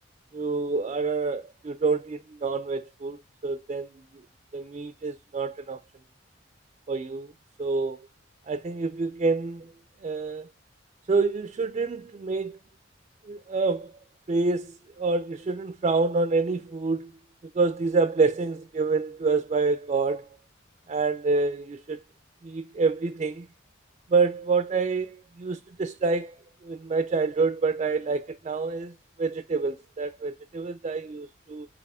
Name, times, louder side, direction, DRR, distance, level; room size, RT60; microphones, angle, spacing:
voice 1, 0.3-3.2 3.4-4.2 4.5-5.8 6.9-7.3 7.6-8.1 8.5-9.7 10.0-10.5 11.1-12.6 13.2-13.9 14.3-17.1 17.4-20.3 20.9-22.0 22.4-23.5 24.1-31.7, right 4 dB, 30° right, 0.3 m, -27 dB
8.2 x 2.9 x 2.2 m
head